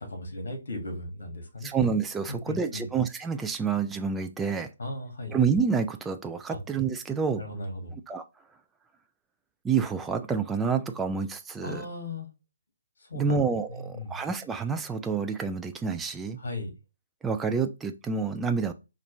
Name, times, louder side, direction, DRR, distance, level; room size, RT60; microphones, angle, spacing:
voice 1, 0.1-1.7 2.3-2.9 4.8-5.4 6.5-6.6 7.4-8.0 11.6-12.3 13.0-13.4 13.7-14.2 16.4-16.7, left 2 dB, 65° left, 4 dB, 1.7 m, -37 dB
voice 2, 1.6-4.7 5.3-7.4 8.1-8.2 9.6-11.9 13.1-16.4 17.2-18.7, right 5 dB, 10° right, 7 dB, 0.4 m, -28 dB
4.3 x 2.5 x 3.2 m, 0.27 s
figure-of-eight pair, 135°, 0 cm